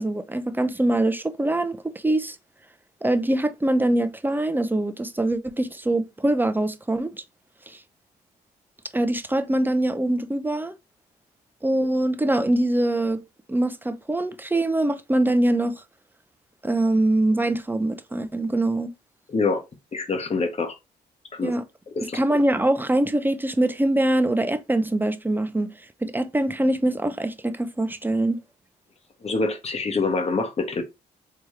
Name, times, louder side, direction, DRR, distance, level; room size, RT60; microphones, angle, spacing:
voice 1, 0.0-2.4 3.0-7.1 8.9-10.7 11.6-13.2 13.5-15.8 16.6-18.9 21.4-21.6 22.1-25.7 26.0-28.4, right 1 dB, 10° right, 0.5 m, -23 dB
voice 2, 19.3-19.6 19.9-20.7 21.3-21.5 21.9-22.2 29.2-30.8, left 3 dB, 35° left, 1.1 m, -25 dB
3.5 x 2.9 x 3.2 m
cardioid pair, 75°, 18 cm